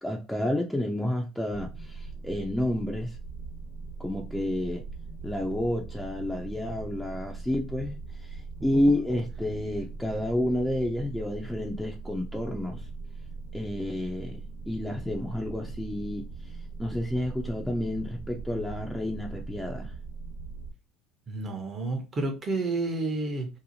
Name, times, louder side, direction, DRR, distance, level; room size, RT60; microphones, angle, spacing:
voice 1, 0.0-3.2 4.0-4.8 5.2-12.9 13.5-20.0, left 1 dB, 5° left, 0.4 m, -30 dB
sound 1, 1.5-20.7, right 4 dB, 70° left, 0.9 m, -40 dB
voice 2, 21.3-23.5, right 2 dB, 35° right, 0.7 m, -30 dB
2.7 x 2.1 x 2.8 m
hypercardioid pair, 70°, 0 cm